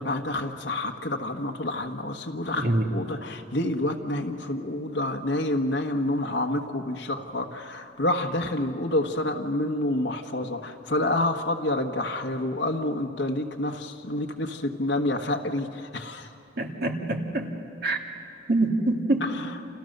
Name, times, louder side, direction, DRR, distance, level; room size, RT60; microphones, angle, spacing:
voice 1, 0.0-16.3 19.2-19.5, left 1 dB, 70° left, 3 dB, 1.5 m, -28 dB
voice 2, 2.6-2.9 16.6-17.5 17.8-18.0 18.5-19.2, right 2 dB, 55° right, 2 dB, 2.3 m, -25 dB
28.5 x 28.0 x 6.7 m, 2.7 s
head